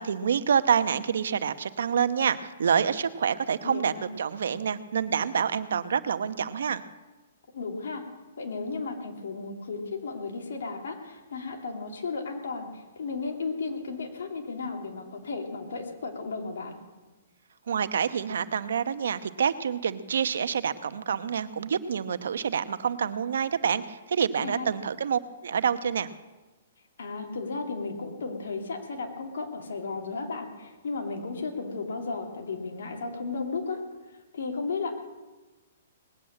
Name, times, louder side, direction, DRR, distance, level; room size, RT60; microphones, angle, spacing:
voice 1, 0.0-6.8 17.7-26.1, right 7 dB, 75° right, 12 dB, 0.9 m, -27 dB
voice 2, 3.6-4.1 7.5-8.1 8.4-16.8 24.4-24.6 27.0-33.8 34.3-34.9, left 4 dB, 80° left, 3 dB, 2.7 m, -34 dB
19.0 x 8.6 x 8.7 m, 1.2 s
hypercardioid pair, 145°, 0 cm